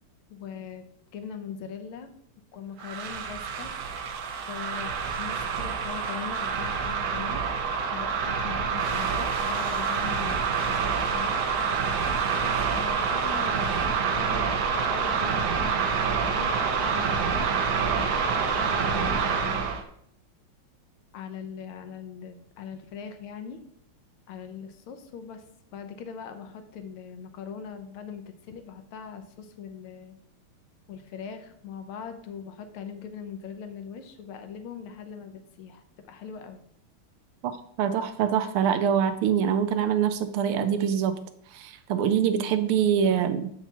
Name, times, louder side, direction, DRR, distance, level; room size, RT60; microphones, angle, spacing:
voice 1, 0.3-0.8 1.1-2.1 2.5-3.7 4.5-7.4 7.9-11.4 12.3-17.5 17.8-19.7 21.1-23.6 24.3-25.5 25.7-30.2 30.9-36.6, left 6 dB, 80° left, 7 dB, 1.5 m, -41 dB
sound 1, 2.8-19.8, right 6 dB, 65° right, 1.1 m, -27 dB
voice 2, 37.8-41.2 41.5-43.5, right 8 dB, 90° right, 10 dB, 1.5 m, -24 dB
7.0 x 5.8 x 2.8 m, 0.71 s
omnidirectional pair, 2.4 m